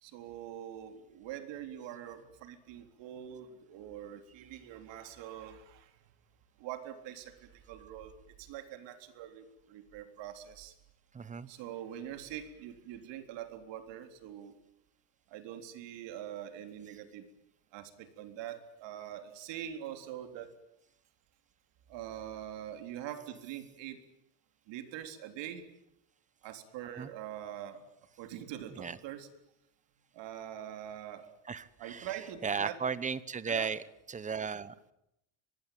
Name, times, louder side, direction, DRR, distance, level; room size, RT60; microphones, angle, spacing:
voice 1, 0.0-5.9 6.6-8.1 8.4-10.7 11.5-14.6 15.3-17.3 17.7-20.5 21.9-24.0 24.7-25.7 26.4-27.8 28.2-29.3 30.1-31.3 31.8-32.8 33.5-33.7, right 11 dB, 60° right, 7 dB, 3.8 m, -44 dB
voice 2, 11.1-11.5 27.0-27.1 28.8-29.0 31.5-32.1 32.4-33.8 34.1-34.7, right 6 dB, 15° right, 17 dB, 1.0 m, -35 dB
24.5 x 20.5 x 9.4 m, 0.83 s
cardioid pair, 150°, 49 cm